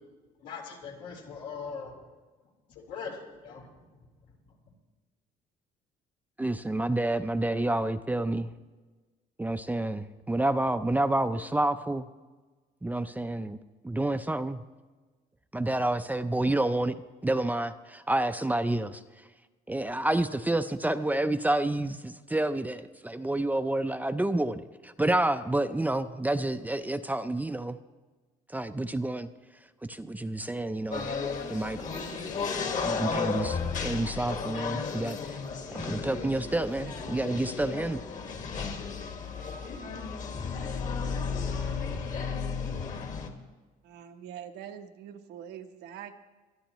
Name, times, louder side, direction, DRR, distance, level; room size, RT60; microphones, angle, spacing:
voice 1, 0.4-2.0 2.7-3.7 4.0-4.1, left 5 dB, 85° left, -2 dB, 3.9 m, -40 dB
voice 2, 6.4-8.5 9.4-12.1 12.8-13.6 13.8-14.6 15.5-17.0 17.2-19.0 19.7-27.8 28.5-29.3 29.8-31.1 31.5-31.9 32.8-35.4 35.7-38.0, right 1 dB, 10° right, 9 dB, 0.5 m, -29 dB
sound 1, 30.9-43.3, left 5 dB, 50° left, 1.7 m, -33 dB
voice 3, 43.8-46.1, right 9 dB, 80° right, 7 dB, 1.0 m, -44 dB
21.5 x 12.5 x 3.1 m, 1.3 s
cardioid pair, 110°, 17 cm